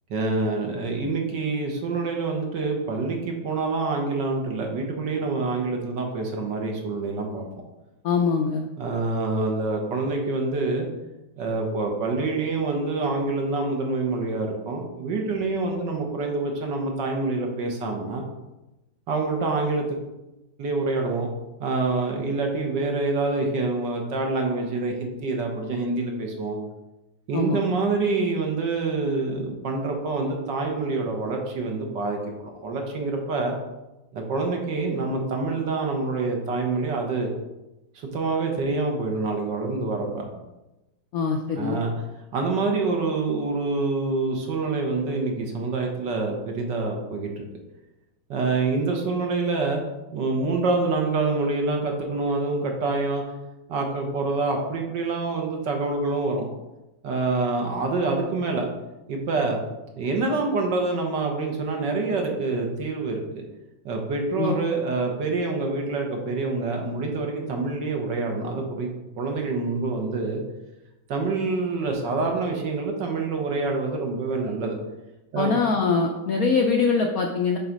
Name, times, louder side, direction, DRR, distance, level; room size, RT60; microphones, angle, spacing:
voice 1, 0.1-7.5 8.8-10.9 11.4-18.3 19.1-20.0 20.6-21.3 21.6-26.6 27.3-33.6 34.1-37.3 38.0-40.4 41.6-41.9 42.3-47.4 48.3-49.8 50.1-53.2 53.7-56.5 57.0-58.7 59.1-59.6 60.0-63.4 63.9-70.4 71.1-74.8 75.3-75.5, right 3 dB, 65° right, 1 dB, 1.7 m, -26 dB
voice 2, 8.0-8.6 27.3-27.6 41.1-41.8 64.4-64.6 75.4-77.6, left 5 dB, 70° left, 2 dB, 0.8 m, -23 dB
7.1 x 3.9 x 5.3 m, 0.99 s
omnidirectional pair, 2.2 m